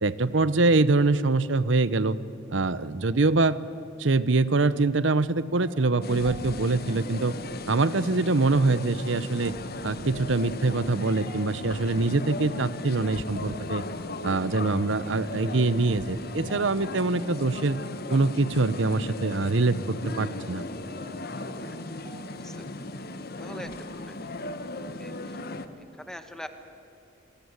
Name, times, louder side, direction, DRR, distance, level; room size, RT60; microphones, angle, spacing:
voice 1, 0.0-2.2 2.5-3.6 4.0-7.3 7.7-9.5 9.8-13.8 14.2-17.8 18.1-20.6, right 3 dB, 65° right, 16 dB, 0.9 m, -24 dB
sound 1, 5.4-22.2, equal, 20° right, 3.4 m, -48 dB
sound 2, 6.0-25.7, left 2 dB, 50° left, 1.3 m, -37 dB
voice 2, 23.4-24.1 25.0-25.4 25.8-26.5, equal, 5° left, 8 dB, 1.5 m, -43 dB
26.5 x 21.0 x 9.7 m, 2.5 s
head